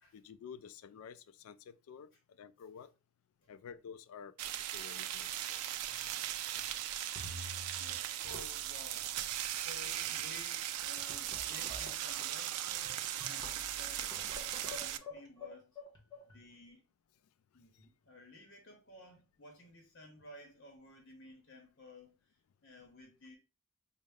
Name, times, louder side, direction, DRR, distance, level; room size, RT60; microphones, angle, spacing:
voice 1, 0.1-2.1 2.4-2.9 3.5-4.3 4.7-5.6, left 7 dB, 75° left, 0.3 m, -50 dB
sound 1, 4.4-15.0, right 12 dB, 90° right, 0.3 m, -38 dB
sound 2, 5.9-6.2 6.6-6.7 7.1-8.0 8.2-8.8 9.6-9.7 9.9-10.3 10.8-16.4, left 2 dB, 20° left, 0.9 m, -49 dB
voice 2, 7.0-9.3 9.6-14.1 14.4-15.8 16.3-16.9 17.5-23.4, left 2 dB, 50° left, 0.8 m, -55 dB
4.1 x 2.1 x 3.4 m
head